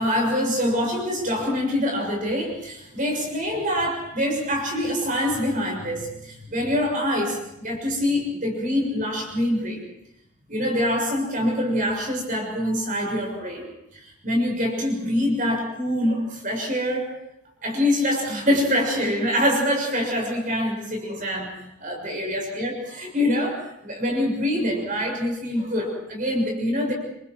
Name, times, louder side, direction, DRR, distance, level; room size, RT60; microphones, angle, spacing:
voice 1, 0.0-9.8 10.5-13.7 13.9-17.1 17.6-21.5 21.8-26.9, left 1 dB, 40° right, 1 dB, 6.8 m, -25 dB
29.0 x 26.5 x 4.7 m, 0.82 s
head